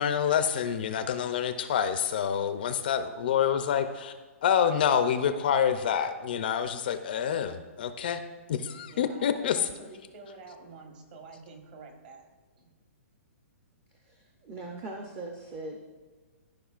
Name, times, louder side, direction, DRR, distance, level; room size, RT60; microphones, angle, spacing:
voice 1, 0.0-4.1 4.4-8.2 8.5-9.6, left 8 dB, 40° left, 10 dB, 0.4 m, -27 dB
voice 2, 8.9-12.3 12.6-12.7, right 3 dB, 35° right, 3 dB, 1.2 m, -48 dB
voice 3, 13.9-15.8, right 2 dB, 20° right, 1 dB, 0.5 m, -40 dB
14.0 x 4.9 x 2.4 m, 1.3 s
hypercardioid pair, 170°, 8 cm